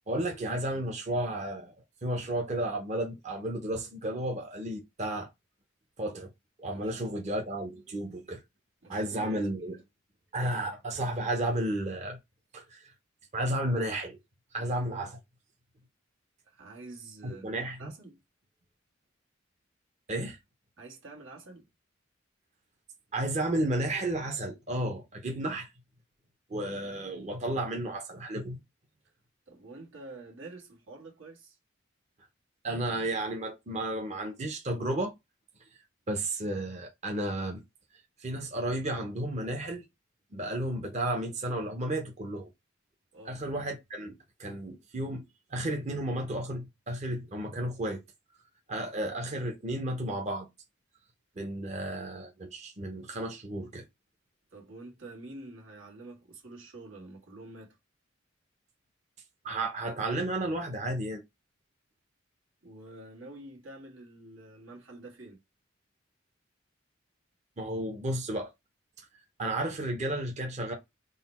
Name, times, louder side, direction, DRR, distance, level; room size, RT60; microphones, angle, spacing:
voice 1, 0.1-1.7 2.0-5.3 6.0-6.3 6.6-8.4 8.9-9.8 10.3-12.2 12.5-12.9 13.3-14.2 14.5-15.2 17.2-17.9 20.1-20.4 23.1-25.7 26.5-28.6 32.6-35.1 36.1-37.6 38.2-39.8 40.3-42.5 43.3-45.2 45.5-48.0 48.7-50.5 51.4-53.8 59.4-61.2 67.6-68.5 69.0-69.1 69.4-70.7, right 1 dB, 35° right, 0.7 m, -32 dB
voice 2, 6.7-7.2 8.8-9.8 16.4-18.2 20.8-21.7 29.5-31.6 43.1-43.4 54.5-57.8 62.6-65.4, right 2 dB, 80° right, 1.5 m, -48 dB
3.9 x 2.2 x 4.2 m
head